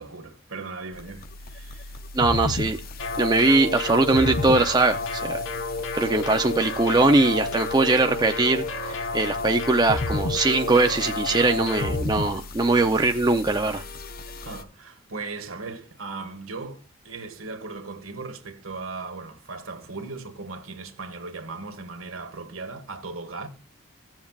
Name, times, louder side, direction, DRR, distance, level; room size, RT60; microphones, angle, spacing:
voice 1, 0.0-2.0 6.0-6.1 10.5-10.6 14.4-23.5, right 3 dB, 80° right, 1.7 m, -38 dB
sound 1, 0.9-14.6, left 2 dB, 45° left, 0.6 m, -35 dB
voice 2, 2.1-2.8 3.2-5.4 5.9-13.8, right 3 dB, 20° right, 0.6 m, -21 dB
sound 2, 3.0-12.0, left 3 dB, 70° left, 1.2 m, -31 dB
16.5 x 7.3 x 2.4 m
head